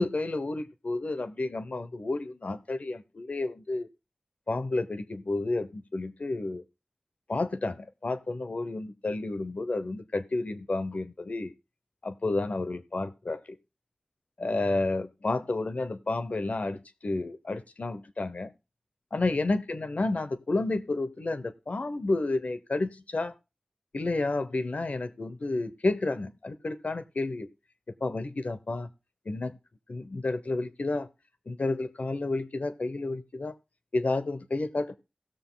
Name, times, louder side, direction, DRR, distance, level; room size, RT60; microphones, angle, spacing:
voice 1, 0.0-3.9 4.5-6.6 7.3-11.5 12.0-13.6 14.4-18.5 19.1-23.3 23.9-27.5 27.9-28.9 29.2-29.6 29.9-31.1 31.5-33.5 33.9-35.0, left 2 dB, 75° left, 1.0 m, -31 dB
16.5 x 6.8 x 3.9 m
wide cardioid pair, 50°, 2 cm